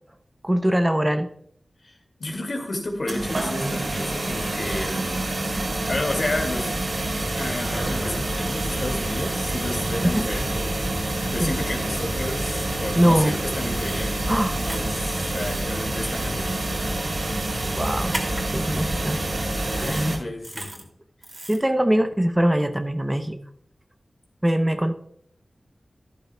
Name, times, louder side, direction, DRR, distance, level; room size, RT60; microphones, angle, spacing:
voice 1, 0.4-1.3 10.0-10.3 11.4-11.5 13.0-13.4 14.3-14.5 17.8-18.2 18.5-19.2 19.8-20.2 21.5-23.4 24.4-24.9, equal, 15° right, 8 dB, 0.7 m, -22 dB
voice 2, 1.8-5.4 5.9-6.7 7.3-14.2 14.5-17.0 19.7-20.9 21.4-21.5, left 2 dB, 65° left, 2 dB, 2.3 m, -32 dB
sound 1, 3.1-20.2, right 1 dB, 60° right, 3.9 m, -27 dB
sound 2, 13.7-14.0 14.6-14.8 15.3-15.6 16.1-16.3 18.1-18.4 19.1-19.2 19.6-20.1 20.4-20.8 21.2-21.6, right 1 dB, 35° right, 2.5 m, -36 dB
12.0 x 11.5 x 2.3 m, 0.67 s
wide cardioid pair, 55°, 0 cm